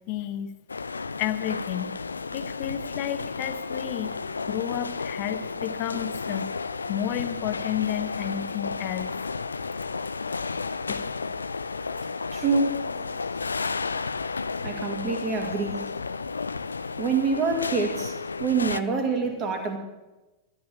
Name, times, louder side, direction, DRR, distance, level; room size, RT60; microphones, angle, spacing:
voice 1, 0.1-0.5 1.2-2.0 2.3-4.1 4.5-6.5 6.9-9.1 10.9-11.0, left 11 dB, 45° left, 11 dB, 1.1 m, -31 dB
sound 1, 0.7-18.8, left 4 dB, 75° left, 0.4 m, -32 dB
voice 2, 12.3-12.8 14.6-15.8 17.0-19.8, right 4 dB, 35° right, 4 dB, 2.5 m, -26 dB
13.0 x 9.3 x 8.7 m, 1.1 s
figure-of-eight pair, 90°, 0 cm